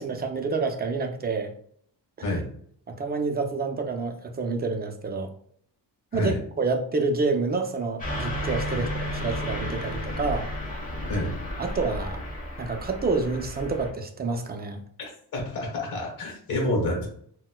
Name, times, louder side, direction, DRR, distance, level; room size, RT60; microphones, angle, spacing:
voice 1, 0.0-1.5 2.9-5.3 6.1-10.5 11.6-12.2 12.6-14.8, right 3 dB, 25° right, 5 dB, 0.4 m, -28 dB
Car passing by / Truck, 8.0-13.9, left 1 dB, 20° left, 1.0 m, -32 dB
voice 2, 15.3-17.1, left 1 dB, 45° left, -1 dB, 1.2 m, -28 dB
4.0 x 2.2 x 2.2 m, 0.63 s
cardioid pair, 110°, 42 cm